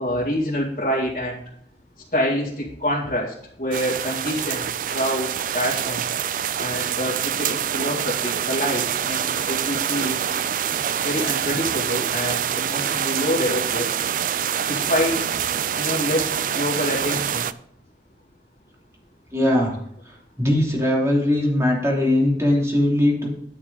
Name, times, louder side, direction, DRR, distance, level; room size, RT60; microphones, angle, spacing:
voice 1, 0.0-1.4 2.1-6.0 6.6-10.2 11.0-13.9 14.6-15.2 15.7-17.5, equal, 45° left, -7 dB, 2.3 m, -26 dB
sound 1, 3.7-17.5, right 8 dB, 50° right, 0.4 m, -25 dB
voice 2, 19.3-19.7 20.4-23.3, left 1 dB, 15° right, -2 dB, 2.9 m, -20 dB
10.5 x 8.4 x 3.9 m, 0.67 s
head